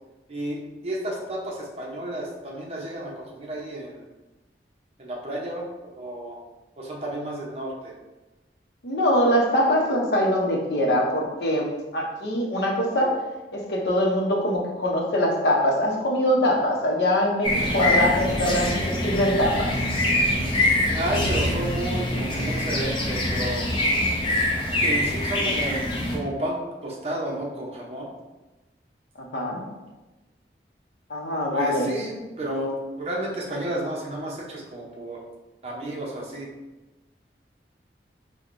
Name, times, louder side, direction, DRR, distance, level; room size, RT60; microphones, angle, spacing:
voice 1, 0.3-4.0 5.0-5.6 5.9-6.4 6.8-7.9 20.9-23.6 24.8-25.8 26.1-26.6 26.8-28.1 31.5-35.2 35.6-36.5, right 1 dB, 35° right, -3 dB, 0.6 m, -31 dB
voice 2, 8.8-13.2 13.5-19.8 29.2-29.6 31.1-31.9, equal, 70° left, -1 dB, 0.6 m, -23 dB
sound 1, 17.4-26.2, left 1 dB, 30° left, 0.5 m, -24 dB
4.4 x 2.1 x 2.5 m, 1.1 s
head